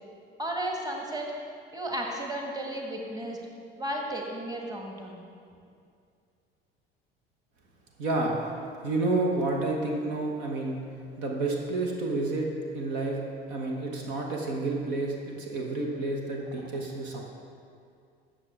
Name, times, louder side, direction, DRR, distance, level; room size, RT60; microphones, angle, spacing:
voice 1, 0.4-1.3 1.7-3.4 3.8-5.2, right 1 dB, 10° right, 0 dB, 1.5 m, -33 dB
voice 2, 8.0-8.3 8.8-10.8 11.2-12.5 12.7-13.2 13.5-17.2, right 2 dB, 60° right, 0 dB, 1.3 m, -29 dB
12.5 x 7.4 x 3.5 m, 2.3 s
figure-of-eight pair, 60°, 30 cm